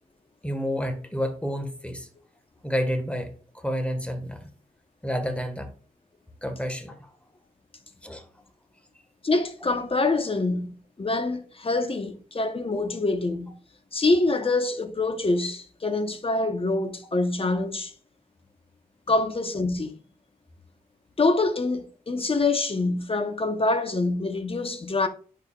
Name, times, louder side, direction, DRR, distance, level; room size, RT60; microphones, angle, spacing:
voice 1, 0.4-2.1 2.6-4.5 5.0-5.7 6.4-7.1 8.0-8.3, equal, 10° left, 1.6 m, -30 dB
voice 2, 9.2-13.5 13.9-17.9 19.1-19.9 21.2-25.1, left 3 dB, 35° left, 1.0 m, -25 dB
10.5 x 4.8 x 2.4 m
cardioid pair, 60°, 15 cm